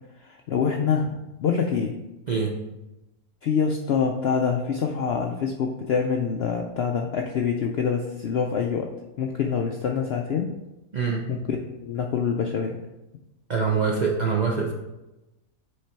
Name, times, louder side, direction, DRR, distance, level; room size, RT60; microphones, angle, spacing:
voice 1, 0.2-1.1 1.4-2.0 3.4-8.9 9.2-10.5 11.3-12.8, left 6 dB, 70° left, 2 dB, 0.6 m, -25 dB
voice 2, 13.5-14.7, right 5 dB, 50° right, -2 dB, 0.5 m, -24 dB
7.7 x 3.3 x 4.4 m, 1.0 s
omnidirectional pair, 1.5 m